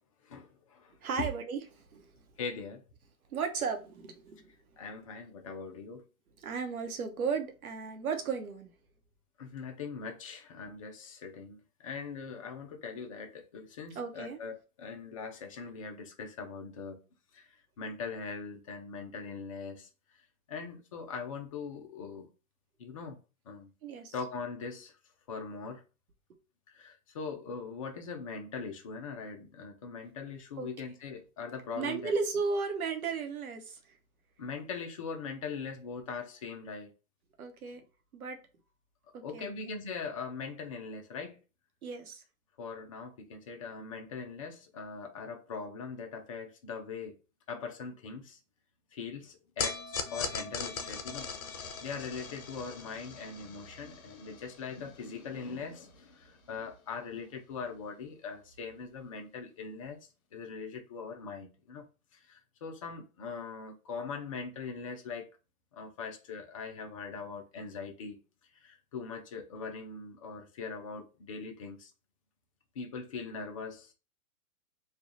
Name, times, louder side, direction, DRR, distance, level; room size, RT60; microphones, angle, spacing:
voice 1, 0.2-1.3 2.4-2.8 4.8-6.0 9.4-17.0 17.3-20.2 20.5-22.3 22.8-23.2 23.5-23.7 24.1-25.0 25.3-25.8 26.7-32.1 34.4-36.9 39.2-41.4 42.6-47.2 47.5-48.4 48.9-60.0 60.3-61.9 62.1-65.3 65.7-68.2 68.5-71.9 72.7-73.9, left 5 dB, 25° left, 0.4 m, -41 dB
voice 2, 1.0-2.1 3.3-4.5 6.4-8.7 13.9-14.4 23.8-24.1 30.6-30.7 31.7-34.0 37.4-37.8 38.1-38.4 39.1-39.5 41.8-42.2, right 5 dB, 75° right, 1.0 m, -35 dB
sound 1, 49.6-56.0, left 5 dB, 70° left, 0.8 m, -40 dB
3.3 x 2.3 x 3.8 m
hypercardioid pair, 135°, 43 cm